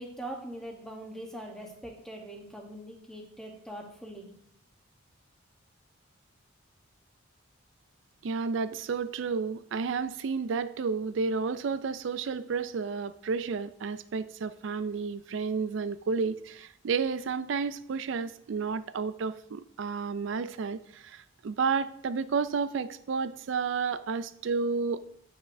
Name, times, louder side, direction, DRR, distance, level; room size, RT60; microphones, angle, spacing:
voice 1, 0.0-4.3, right 1 dB, ahead, 0 dB, 1.0 m, -42 dB
voice 2, 8.2-25.0, right 5 dB, 60° right, 14 dB, 0.4 m, -31 dB
9.5 x 5.6 x 2.6 m, 0.70 s
head